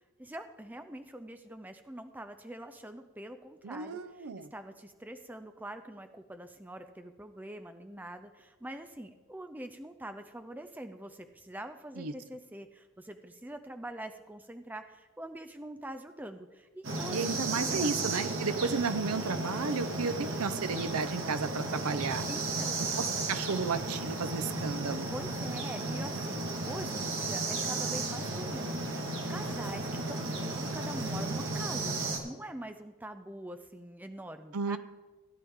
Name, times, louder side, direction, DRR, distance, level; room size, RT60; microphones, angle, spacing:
voice 1, 0.2-17.9 22.3-22.8 25.1-28.8 29.3-34.8, right 1 dB, 10° right, 7 dB, 0.5 m, -44 dB
voice 2, 3.6-4.5 12.0-12.1 17.1-22.2 22.8-25.1 34.5-34.8, right 5 dB, 80° right, 12 dB, 0.6 m, -33 dB
sound 1, 16.8-32.2, right 2 dB, 60° right, 1.7 m, -34 dB
16.0 x 10.0 x 3.6 m, 1.2 s
head